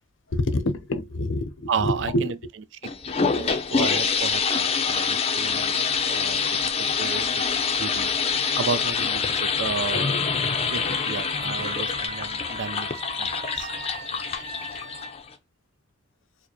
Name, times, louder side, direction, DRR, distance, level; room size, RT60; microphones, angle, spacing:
voice 1, 0.3-2.3 7.1-7.3, left 1 dB, 75° left, 0.6 m, -27 dB
voice 2, 1.7-2.4 3.4-6.4 6.8-7.4 7.8-8.1 8.6-10.1 10.7-12.9 13.2-13.3 13.6-13.7, right 5 dB, 65° right, 0.4 m, -32 dB
sound 1, 2.8-15.3, left 5 dB, 30° left, 0.5 m, -26 dB
Wind instrument woodwind instrument, 10.1-15.1, right 3 dB, 35° right, 1.1 m, -39 dB
4.8 x 2.1 x 3.0 m
head